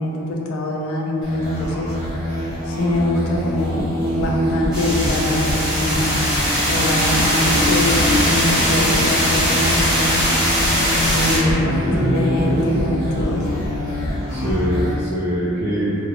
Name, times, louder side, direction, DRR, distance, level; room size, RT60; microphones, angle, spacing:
voice 1, 0.0-1.9 2.7-3.9 4.2-6.1 6.7-10.1 11.1-13.4, left 1 dB, 85° left, 0 dB, 0.4 m, -23 dB
sound 1, 1.2-14.9, left 1 dB, 30° right, 1.0 m, -24 dB
sound 2, 4.7-11.4, equal, 5° right, 0.9 m, -20 dB
voice 2, 11.6-12.7 13.3-13.5 14.3-16.0, equal, 50° right, -12 dB, 0.5 m, -24 dB
2.4 x 2.1 x 3.0 m, 2.8 s
head